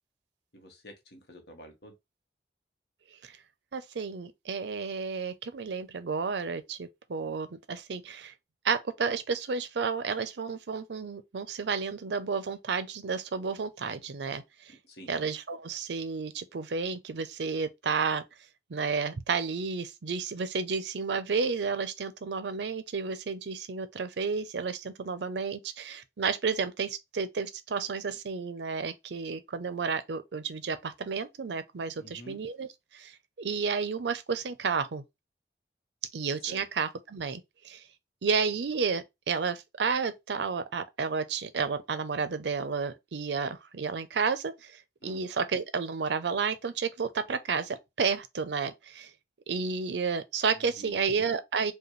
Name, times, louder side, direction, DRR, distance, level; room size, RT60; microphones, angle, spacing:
voice 1, 0.5-1.9 14.7-15.1 32.0-32.4 36.5-36.6 45.0-45.2 50.5-51.1, equal, 70° left, 1.1 m, -49 dB
voice 2, 3.7-8.3 8.6-14.7 15.1-18.2 18.7-32.7 32.9-33.1 33.4-35.0 36.1-37.8 38.2-49.1 49.5-51.7, right 5 dB, 85° right, 0.5 m, -31 dB
5.1 x 2.3 x 3.1 m
head